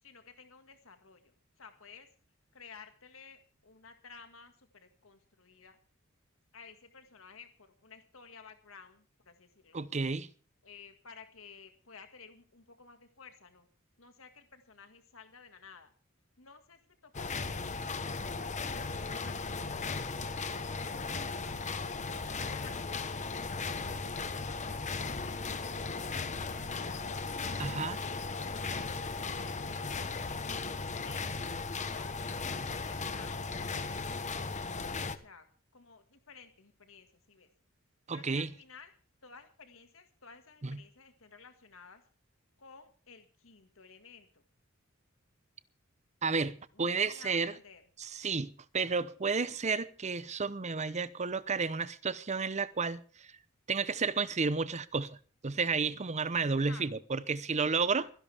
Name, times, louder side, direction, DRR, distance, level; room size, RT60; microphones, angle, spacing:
voice 1, 0.0-2.1 2.5-5.8 6.5-9.8 10.6-13.7 14.0-15.9 16.4-17.6 18.7-20.0 20.4-21.8 22.5-24.2 24.6-27.3 28.0-29.8 31.0-31.3 31.9-33.4 33.6-35.5 35.7-37.5 38.1-38.9 39.2-42.0 42.6-44.4 46.7-47.8 56.7-57.1 58.0-58.1, left 5 dB, 70° left, 1.9 m, -55 dB
voice 2, 9.7-10.3 27.6-28.0 38.1-38.5 40.6-40.8 46.2-47.5 48.2-53.3 53.7-55.2 55.4-58.1, right 4 dB, 35° right, 0.8 m, -32 dB
sound 1, 17.1-35.2, left 4 dB, 35° left, 1.1 m, -37 dB
24.5 x 11.0 x 3.5 m
head